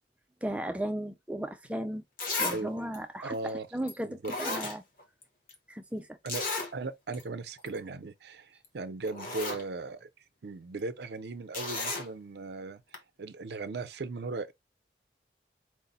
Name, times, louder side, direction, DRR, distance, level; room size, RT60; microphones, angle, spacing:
voice 1, 0.4-2.0 2.4-4.8 5.7-6.1, right 1 dB, 5° right, 0.4 m, -35 dB
Zipper (clothing), 1.6-1.7 2.2-2.6 2.9-3.0 3.9-4.0 4.2-5.2 5.5-5.6 6.3-6.7 7.1-7.2 7.6-7.8 8.6-8.7 9.0-9.6 11.5-12.1 12.9-13.0, left 3 dB, 50° left, 0.9 m, -34 dB
voice 2, 3.2-3.7 4.0-4.3 6.2-10.1 10.4-12.8 13.2-14.5, right 3 dB, 65° right, 0.5 m, -37 dB
4.7 x 2.0 x 4.0 m
head